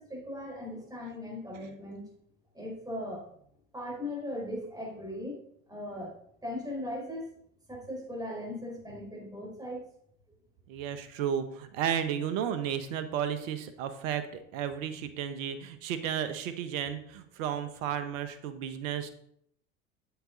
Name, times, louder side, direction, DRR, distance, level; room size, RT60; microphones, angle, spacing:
voice 1, 0.0-2.1 2.5-3.3 3.7-5.4 5.7-6.1 6.4-7.3 7.7-9.8, left 1 dB, 10° right, -2 dB, 4.6 m, -38 dB
voice 2, 10.7-14.2 14.5-19.1, right 9 dB, 70° right, 10 dB, 1.2 m, -33 dB
9.2 x 8.2 x 3.9 m, 0.70 s
hypercardioid pair, 80°, 40 cm